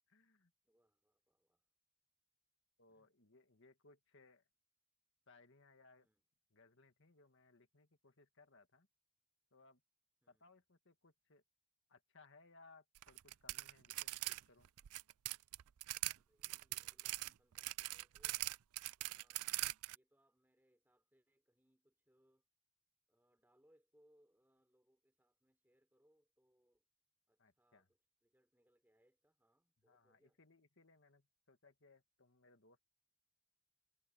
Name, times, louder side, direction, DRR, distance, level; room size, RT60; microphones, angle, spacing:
voice 1, 0.1-0.5 2.8-4.5 5.3-6.1 6.5-8.9 9.5-9.8 10.3-11.4 11.9-14.7 27.4-27.9 29.8-32.8, left 3 dB, 55° left, 2.1 m, -67 dB
voice 2, 0.6-1.7 2.9-3.1 6.0-6.2 10.2-10.5 16.2-18.4 19.0-22.5 23.1-26.9 27.3-30.4, equal, 10° right, 5.9 m, -77 dB
sound 1, 13.0-14.4 14.6-16.2 16.4-20.0, right 18 dB, 80° right, 0.4 m, -42 dB
head